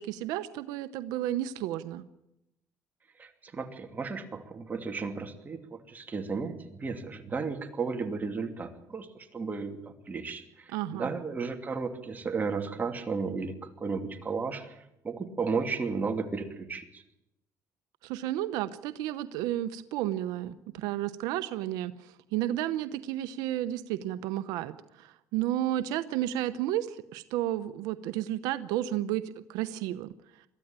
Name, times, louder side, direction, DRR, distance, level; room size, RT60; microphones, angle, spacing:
voice 1, 0.0-2.0 10.7-11.1 18.0-30.4, right 13 dB, 90° right, 12 dB, 0.8 m, -32 dB
voice 2, 3.2-9.8 10.1-17.0, right 4 dB, 25° right, 5 dB, 2.6 m, -34 dB
22.5 x 14.0 x 8.9 m, 0.87 s
cardioid pair, 105°, 6 cm